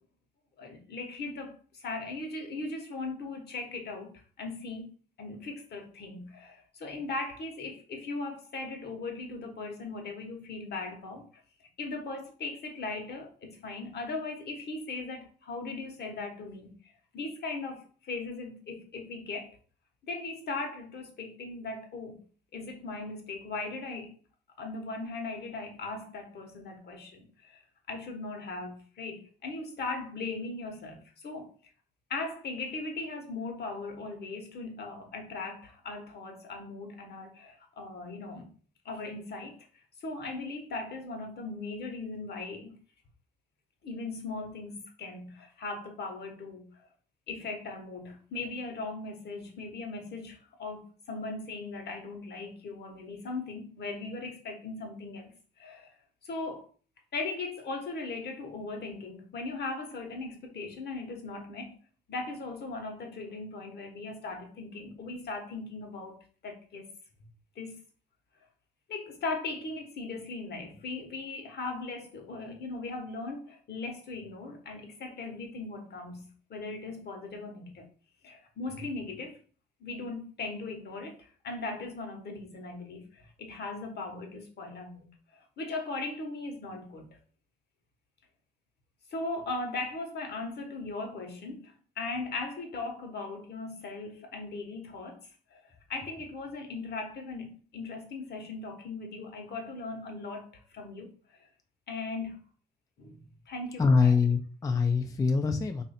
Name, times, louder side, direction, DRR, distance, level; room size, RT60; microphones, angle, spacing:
voice 1, 0.6-4.9 5.2-11.2 11.6-19.6 20.0-22.2 22.5-24.1 24.6-31.5 32.1-38.5 38.8-42.8 43.8-46.9 47.3-55.3 55.6-56.7 57.1-61.8 62.1-66.9 67.5-67.8 68.9-77.8 78.2-79.4 79.8-85.1 85.3-87.2 89.1-101.5 101.9-102.4 103.0-104.1, left 3 dB, 55° left, 1.1 m, -39 dB
voice 2, 103.8-105.8, left 5 dB, 15° left, 0.3 m, -24 dB
3.0 x 2.6 x 4.2 m
cardioid pair, 90°, 20 cm